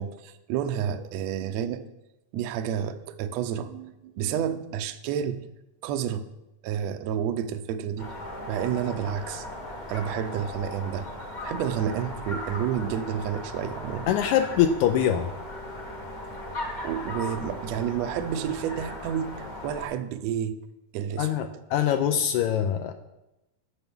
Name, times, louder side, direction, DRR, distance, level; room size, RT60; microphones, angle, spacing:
voice 1, 0.0-1.8 2.3-5.4 5.8-6.2 6.6-8.1 8.5-9.5 9.9-11.1 11.4-14.1 16.8-20.6 20.9-21.3, right 9 dB, 85° right, 9 dB, 1.5 m, -30 dB
sound 1, 8.0-19.9, left 1 dB, 35° left, 0.7 m, -37 dB
voice 2, 14.1-15.3 21.2-22.9, left 9 dB, 85° left, 7 dB, 1.7 m, -23 dB
14.0 x 6.9 x 3.6 m, 0.92 s
omnidirectional pair, 3.9 m